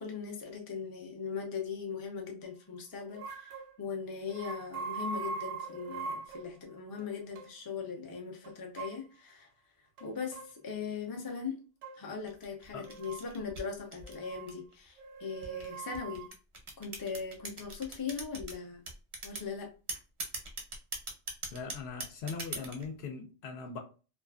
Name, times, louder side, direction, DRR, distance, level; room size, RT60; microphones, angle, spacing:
voice 1, 0.0-9.5 10.0-11.6 11.9-16.2 16.8-18.8 19.2-19.7, left 6 dB, 35° left, 0.4 m, -40 dB
sound 1, 3.1-3.7 4.3-6.5 7.0-7.1 7.3-7.5 8.4-9.0 10.0-10.5 11.8-12.0 12.8-13.2 14.0-14.5 15.0-16.3, right 4 dB, 85° right, 0.9 m, -41 dB
sound 2, 12.3-14.7 15.4-18.5 18.9-19.5 19.9-22.9, right 3 dB, 45° right, 0.5 m, -40 dB
voice 2, 21.5-23.8, left 5 dB, 70° left, 0.8 m, -40 dB
2.4 x 2.3 x 2.2 m
omnidirectional pair, 1.2 m